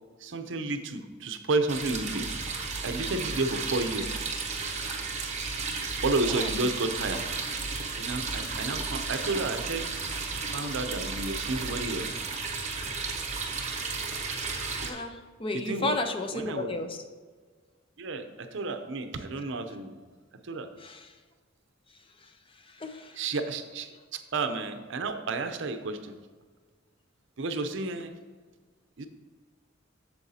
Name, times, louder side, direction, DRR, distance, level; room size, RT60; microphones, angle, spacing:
voice 1, 0.2-2.6 2.8-4.2 6.0-7.2 8.0-9.9 10.3-12.2 15.7-16.0 16.3-16.7 18.0-20.0 20.4-20.7 23.2-26.2 27.4-28.1 29.0-29.1, right 3 dB, 70° right, 8 dB, 0.6 m, -31 dB
sound 1, 1.7-14.9, right 4 dB, 35° right, 0.9 m, -33 dB
voice 2, 14.8-17.0 20.8-21.2 22.2-22.3 22.6-23.2, left 2 dB, 25° left, 6 dB, 0.5 m, -34 dB
8.8 x 7.0 x 2.8 m, 1.5 s
head